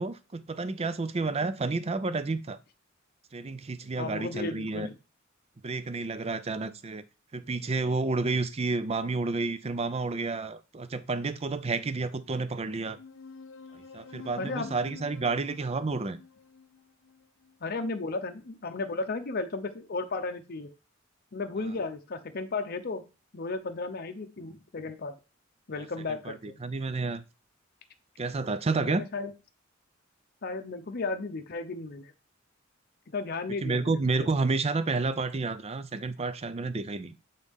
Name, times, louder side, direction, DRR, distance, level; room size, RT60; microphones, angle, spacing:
voice 1, 0.0-2.6 3.3-4.9 5.6-7.0 7.3-13.0 13.7-16.2 26.3-27.2 28.2-29.0 33.6-37.1, right 3 dB, 30° right, 0.5 m, -30 dB
voice 2, 4.0-4.9 14.4-14.8 17.6-20.7 21.3-23.1 23.3-25.2 25.7-26.6 28.8-29.3 30.4-32.1 33.1-34.3, left 3 dB, 50° left, 0.7 m, -34 dB
sound 1, 13.0-17.9, left 5 dB, 80° left, 0.8 m, -48 dB
8.1 x 4.0 x 3.5 m
head